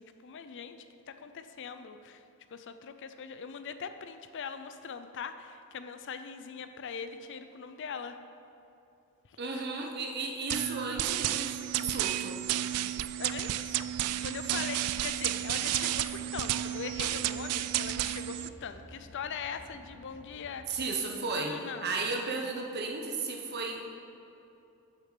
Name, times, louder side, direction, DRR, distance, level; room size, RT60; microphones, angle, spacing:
voice 1, 0.0-2.2 2.5-8.2 9.3-9.6 13.2-13.8 14.2-20.6 21.3-21.9, left 6 dB, 55° left, 9 dB, 0.5 m, -41 dB
voice 2, 9.4-12.4 20.7-23.8, right 3 dB, 50° right, 3 dB, 1.0 m, -34 dB
sound 1, 10.5-18.5, right 13 dB, 85° right, 0.3 m, -32 dB
sound 2, 13.6-20.6, equal, 5° left, 1.6 m, -53 dB
7.4 x 6.6 x 6.7 m, 2.8 s
head